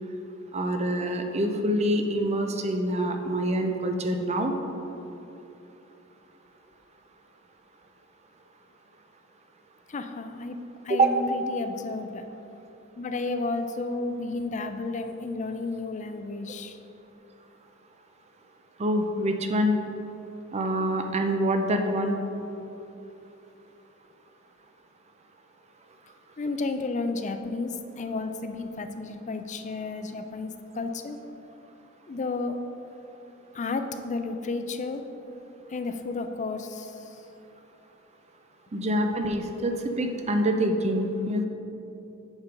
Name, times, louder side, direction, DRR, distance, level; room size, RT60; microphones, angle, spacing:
voice 1, 0.5-4.5 10.9-11.1 18.8-19.8 20.5-22.2 38.7-41.5, right 1 dB, 30° right, 5 dB, 0.6 m, -26 dB
voice 2, 9.9-12.3 13.0-16.8 26.4-31.2 32.1-32.6 33.5-35.0 35.7-37.2, left 3 dB, 35° left, 8 dB, 0.4 m, -32 dB
7.2 x 5.2 x 5.1 m, 2.9 s
head